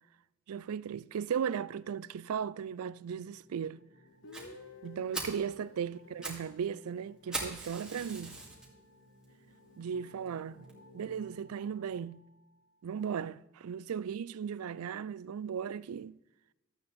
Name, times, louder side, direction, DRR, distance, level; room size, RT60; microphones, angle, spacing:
voice 1, 0.5-3.8 4.8-8.4 9.8-10.7 10.9-12.2 12.8-16.2, right 7 dB, 85° right, 0.4 m, -36 dB
sound 1, 2.2-12.7, left 1 dB, 80° left, 2.7 m, -61 dB
Guitar, 4.2-8.1, left 3 dB, 60° left, 1.1 m, -54 dB
Fire, 4.3-4.4 4.8-4.9 5.1-5.4 6.0-6.4 6.7-6.8 7.3-8.7 9.2-9.3 9.9-10.0 10.3-10.4 10.7-10.8, right 2 dB, 5° right, 2.6 m, -39 dB
13.0 x 8.6 x 4.2 m
head